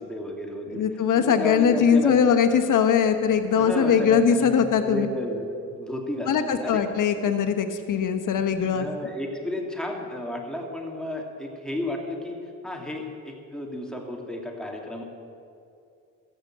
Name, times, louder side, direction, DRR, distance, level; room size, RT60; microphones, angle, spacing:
voice 1, 0.0-0.8 1.1-2.3 3.6-6.8 8.7-12.4 12.6-15.0, left 1 dB, ahead, 0 dB, 2.4 m, -33 dB
voice 2, 0.7-5.1 6.3-8.9, left 7 dB, 65° left, 7 dB, 1.2 m, -21 dB
14.0 x 6.8 x 7.5 m, 2.6 s
supercardioid pair, 60°, 34 cm